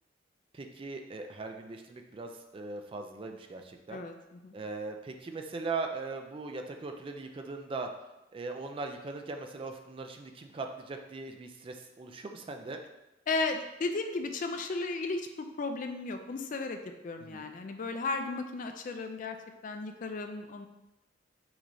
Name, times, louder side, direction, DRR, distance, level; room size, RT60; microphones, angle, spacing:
voice 1, 0.5-4.0 4.5-7.9 8.3-12.8 17.2-17.5, right 3 dB, 30° right, 4 dB, 0.3 m, -39 dB
voice 2, 3.9-4.5 13.3-16.8 17.0-19.4 19.6-20.7, left 3 dB, 45° left, 6 dB, 0.4 m, -35 dB
6.1 x 3.1 x 2.6 m, 0.96 s
head